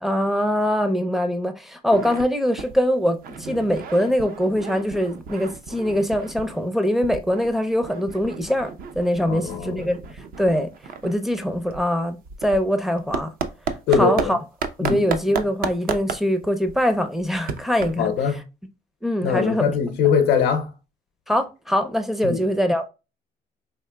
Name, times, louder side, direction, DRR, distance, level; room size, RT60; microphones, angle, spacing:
voice 1, 0.0-10.0 10.4-10.7 11.0-13.3 13.9-14.4 14.8-18.4 19.0-19.7 21.3-22.9, equal, ahead, 0.4 m, -23 dB
sound 1, 1.9-2.3 2.6-2.8 3.1-6.7 7.0-14.3 14.6-18.2, right 6 dB, 60° right, 0.6 m, -32 dB
voice 2, 9.3-9.9 13.9-14.3 14.8-15.0 18.0-18.4 19.2-20.7 22.2-22.4, left 6 dB, 75° left, 0.6 m, -21 dB
4.7 x 2.8 x 2.2 m
cardioid pair, 110°, 17 cm